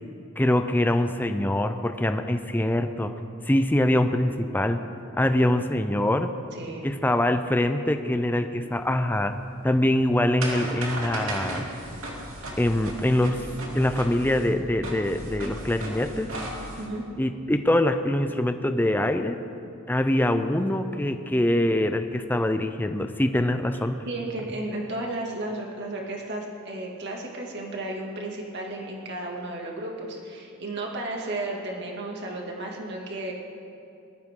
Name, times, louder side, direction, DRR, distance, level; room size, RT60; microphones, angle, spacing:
voice 1, 0.4-3.1 3.4-4.8 5.2-6.3 6.8-9.4 9.6-11.7 12.6-13.4 13.7-16.3 17.2-19.4 19.9-24.0, left 1 dB, 10° left, 8 dB, 0.5 m, -24 dB
voice 2, 5.4-5.8 6.5-6.9 16.8-17.0 24.1-33.3, right 2 dB, 55° right, -1 dB, 2.2 m, -34 dB
sound 1, 8.8-16.9, right 1 dB, 80° right, 2.7 m, -36 dB
20.5 x 13.5 x 3.8 m, 2.6 s
head